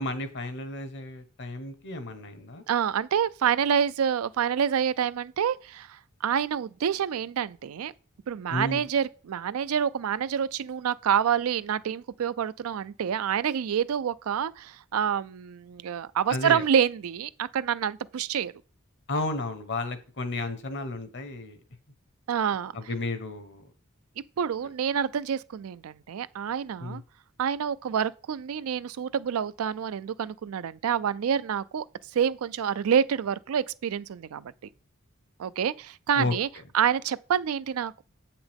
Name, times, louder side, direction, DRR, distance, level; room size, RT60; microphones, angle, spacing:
voice 1, 0.0-2.6 8.5-8.8 16.3-16.7 19.1-21.6 22.7-23.7 26.8-27.0 36.1-36.3, left 2 dB, 55° left, 1.0 m, -32 dB
voice 2, 2.7-7.9 8.3-18.5 22.3-22.7 24.4-27.0 27.4-31.9 32.1-34.5 35.4-36.5 36.7-38.0, right 8 dB, 75° right, 0.4 m, -27 dB
8.0 x 5.8 x 3.5 m
head